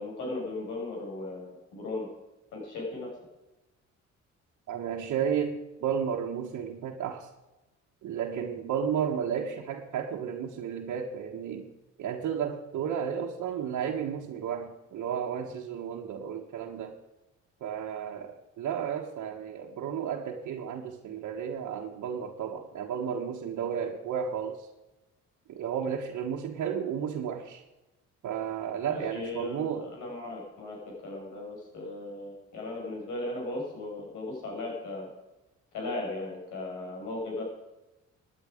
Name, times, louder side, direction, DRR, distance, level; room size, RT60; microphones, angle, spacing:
voice 1, 0.0-2.1 2.5-3.1 28.9-30.8 31.0-35.1 35.7-37.4, left 2 dB, 85° left, -1 dB, 6.3 m, -37 dB
voice 2, 4.7-7.3 8.0-11.7 12.0-16.9 17.6-24.7 25.5-27.6 28.2-29.9, right 8 dB, 75° right, -1 dB, 1.4 m, -33 dB
17.0 x 9.9 x 5.1 m, 1.0 s
cardioid pair, 90°, 30 cm